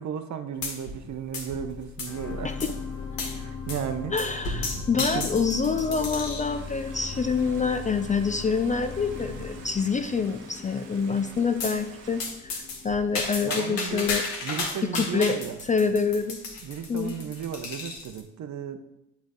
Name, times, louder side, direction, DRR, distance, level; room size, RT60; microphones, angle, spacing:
voice 1, 0.0-2.7 3.3-4.1 4.9-5.3 8.4-8.5 9.2-9.4 13.4-14.1 14.4-15.6 16.6-18.9, right 8 dB, 45° right, 9 dB, 0.8 m, -34 dB
sound 1, 0.6-1.1 1.3-2.2 2.6-2.8 3.2-3.4 3.7-3.9 4.2-6.5 7.1-7.5 8.1-8.2 8.5-8.6 8.9-9.0 9.5-9.9 11.6-11.8 12.2-18.2, left 3 dB, 60° left, 1.5 m, -34 dB
sound 2, 2.1-14.5 15.0-15.1, left 5 dB, 40° left, 1.0 m, -39 dB
voice 2, 4.1-14.2 14.8-15.4 15.7-16.4 16.9-17.2, left 5 dB, 20° left, 9 dB, 0.4 m, -26 dB
Stream, 6.4-12.3, right 4 dB, 90° right, 1.1 m, -50 dB
8.2 x 3.1 x 5.0 m, 0.88 s
hypercardioid pair, 50°, 39 cm